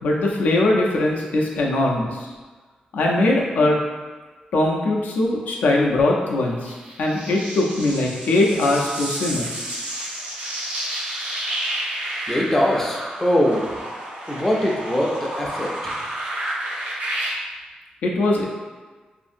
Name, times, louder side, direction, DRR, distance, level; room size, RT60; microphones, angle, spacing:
voice 1, 0.0-2.3 2.9-3.8 4.5-9.5 18.0-18.4, left 2 dB, 90° left, -1 dB, 0.5 m, -21 dB
sound 1, 6.7-17.3, right 1 dB, 85° right, 0.7 m, -30 dB
voice 2, 11.9-16.3, equal, 10° left, -2 dB, 0.3 m, -23 dB
2.6 x 2.6 x 2.5 m, 1.4 s
wide cardioid pair, 165°, 3 cm